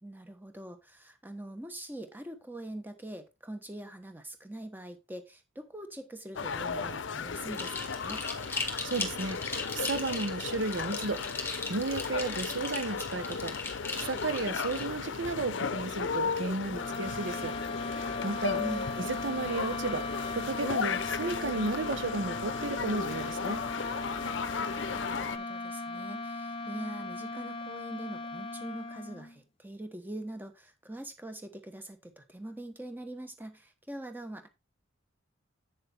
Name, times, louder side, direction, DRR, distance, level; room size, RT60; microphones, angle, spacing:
voice 1, 0.0-8.2 18.6-18.9 24.9-34.5, right 1 dB, 10° right, 1.1 m, -43 dB
sound 1, 6.4-25.4, left 5 dB, 70° left, 0.6 m, -35 dB
sound 2, 7.5-14.9, left 3 dB, 10° left, 1.6 m, -38 dB
voice 2, 8.8-9.4 9.7-11.2 11.7-13.5 14.0-17.5 17.9-18.6 19.0-20.1 20.3-23.6, right 3 dB, 70° right, 0.8 m, -33 dB
sound 3, 16.7-29.4, left 2 dB, 30° left, 0.7 m, -38 dB
8.2 x 6.7 x 3.4 m
head